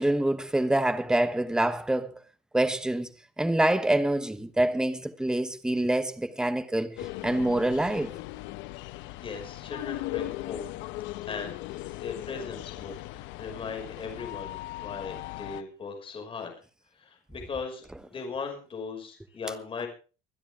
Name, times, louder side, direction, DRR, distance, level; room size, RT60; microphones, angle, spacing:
voice 1, 0.0-2.1 2.5-3.1 3.4-8.1, right 1 dB, 5° right, 1.1 m, -26 dB
sound 1, 7.0-15.6, left 18 dB, 65° left, 0.9 m, -38 dB
voice 2, 9.2-10.6 11.2-11.6 12.0-16.5 17.0-19.9, left 5 dB, 25° left, 5.9 m, -38 dB
24.5 x 10.0 x 3.6 m
cardioid pair, 145°, 21 cm